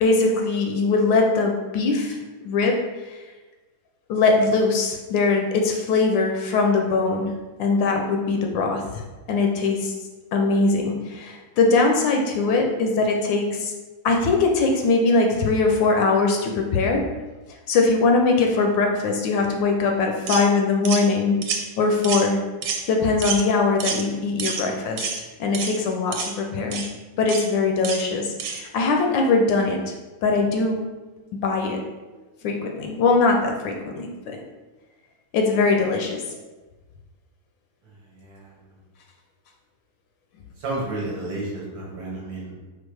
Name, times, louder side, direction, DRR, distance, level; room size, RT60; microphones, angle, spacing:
voice 1, 0.0-2.2 2.4-2.8 3.1-3.2 4.1-7.3 7.6-8.8 9.3-9.9 10.3-13.7 14.0-17.0 17.7-21.5 21.8-22.4 22.9-26.9 27.2-29.8 30.2-30.8 31.4-31.8 32.4-34.4 35.3-36.2, left 3 dB, 75° left, 2 dB, 1.2 m, -21 dB
sound 1, 20.3-20.5 20.9-21.1 21.4-21.6 22.0-22.3 22.6-22.8 23.2-23.4 23.8-24.0 24.4-24.7 25.0-25.2 25.5-25.8 26.1-26.3 26.7-26.9 27.3-27.5 27.8-28.0 28.4-28.6, right 6 dB, 85° right, 1.4 m, -28 dB
voice 2, 38.1-38.6 40.6-42.7, right 2 dB, 60° right, -3 dB, 1.2 m, -32 dB
4.5 x 2.4 x 4.5 m, 1.2 s
omnidirectional pair, 2.2 m